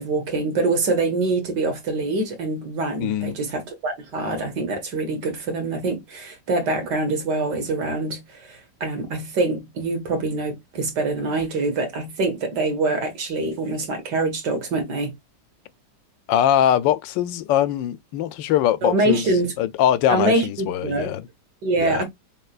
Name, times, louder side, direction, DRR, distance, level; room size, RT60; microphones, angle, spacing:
voice 1, 0.0-15.1 18.8-19.5 20.1-21.1 21.6-22.0, right 2 dB, 70° right, 2.2 m, -25 dB
voice 2, 3.0-3.3 16.3-19.3 19.6-21.3 21.8-22.0, left 11 dB, 85° left, 1.3 m, -22 dB
5.5 x 3.7 x 2.4 m
omnidirectional pair, 1.9 m